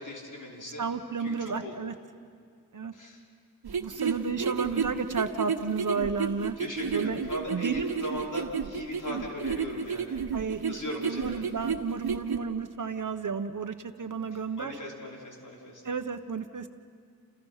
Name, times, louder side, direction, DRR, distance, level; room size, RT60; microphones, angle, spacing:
voice 1, 0.0-0.8 1.2-1.7 2.9-3.2 4.0-4.1 4.4-4.8 6.6-10.2 10.7-11.5 14.3-15.8, left 1 dB, 55° left, -2 dB, 5.3 m, -39 dB
voice 2, 0.8-1.9 2.7-2.9 3.8-6.6 6.9-7.2 7.5-7.9 9.1-9.2 10.3-14.8 15.8-16.7, right 5 dB, 55° right, 8 dB, 1.2 m, -32 dB
sound 1, 3.6-12.4, right 6 dB, 80° right, 1.4 m, -31 dB
29.5 x 29.0 x 5.9 m, 2.2 s
wide cardioid pair, 80°, 37 cm